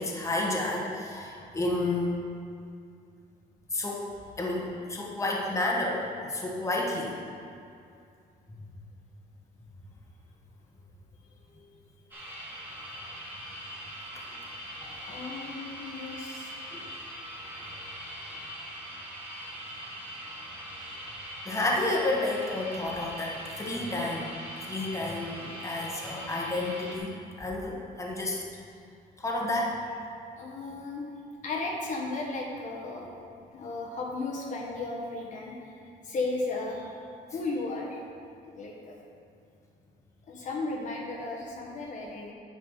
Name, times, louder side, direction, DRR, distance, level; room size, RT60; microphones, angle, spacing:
voice 1, 0.0-2.1 3.7-4.1 4.4-7.2 16.7-16.8 21.4-24.3 24.7-27.1 27.4-28.4 29.2-29.8, left 2 dB, 15° left, -2 dB, 1.4 m, -30 dB
sound 1, 12.1-27.0, equal, 10° right, 2.0 m, -41 dB
voice 2, 14.8-17.4 30.4-31.1 31.4-33.1 33.5-38.0 38.4-38.9 40.3-42.3, left 3 dB, 45° left, -1 dB, 1.3 m, -35 dB
9.7 x 6.0 x 4.8 m, 2.4 s
cardioid pair, 110°, 17 cm